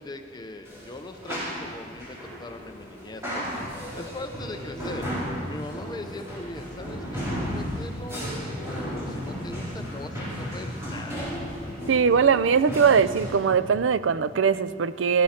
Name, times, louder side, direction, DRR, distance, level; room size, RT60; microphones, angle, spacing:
voice 1, 0.0-3.7 3.9-5.1 5.5-8.3 8.6-11.3, left 2 dB, 20° left, 6 dB, 0.7 m, -40 dB
sound 1, 0.6-13.5, equal, 15° right, 4.8 m, -34 dB
voice 2, 11.9-15.2, right 6 dB, 80° right, 15 dB, 0.5 m, -21 dB
17.5 x 15.0 x 4.3 m, 2.3 s
head